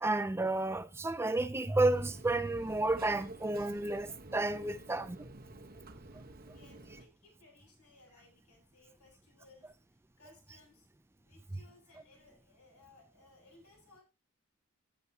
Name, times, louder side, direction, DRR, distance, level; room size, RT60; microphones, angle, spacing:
voice 1, 0.0-5.3, right 2 dB, 10° right, 0.4 m, -31 dB
sound 1, 1.9-7.1, right 2 dB, 40° right, 1.1 m, -50 dB
voice 2, 6.5-10.9 11.2-14.0, left 3 dB, 80° left, 7.5 m, -62 dB
14.0 x 8.7 x 2.8 m
head